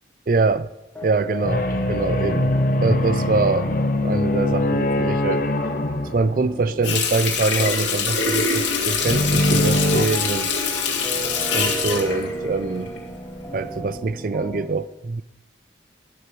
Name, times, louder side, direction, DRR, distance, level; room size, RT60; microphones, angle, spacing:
voice 1, 0.3-0.7 1.0-2.5 2.8-3.7 4.0-5.4 6.1-10.5 11.5-12.9 13.5-15.2, right 3 dB, 50° right, 16 dB, 0.4 m, -24 dB
sound 1, 0.9-14.7, right 1 dB, 10° left, 1.1 m, -36 dB
sound 2, 1.4-6.9 9.1-10.1, left 1 dB, 45° left, 0.9 m, -22 dB
Water tap faucet, 6.8-13.2 13.6-13.8, left 5 dB, 80° left, 2.4 m, -24 dB
11.5 x 7.9 x 6.1 m, 0.99 s
head